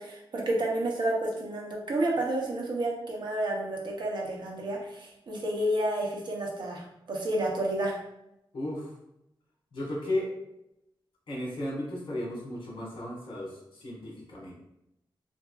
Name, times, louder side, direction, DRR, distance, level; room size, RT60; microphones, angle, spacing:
voice 1, 0.0-7.9, right 1 dB, 60° right, -2 dB, 0.7 m, -30 dB
voice 2, 8.5-8.9 9.7-10.3 11.3-14.6, left 1 dB, 70° left, -4 dB, 1.3 m, -34 dB
3.5 x 2.6 x 2.3 m, 0.84 s
wide cardioid pair, 150°, 9 cm